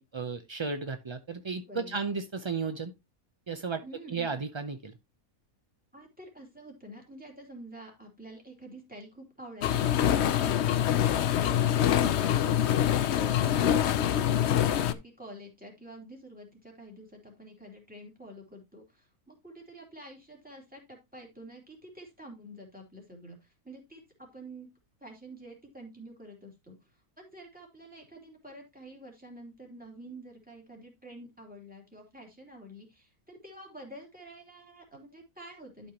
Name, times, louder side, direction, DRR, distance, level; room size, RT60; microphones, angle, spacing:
voice 1, 0.0-2.9 3.5-3.8 4.1-4.9, right 4 dB, 45° right, 8 dB, 0.3 m, -34 dB
voice 2, 1.7-2.1 3.8-4.4 5.9-24.7 25.0-35.9, right 1 dB, 5° right, 0 dB, 2.9 m, -48 dB
sound 1, 9.6-14.9, left 10 dB, 60° left, 0.8 m, -25 dB
11.5 x 5.7 x 2.9 m, 0.22 s
omnidirectional pair, 1.5 m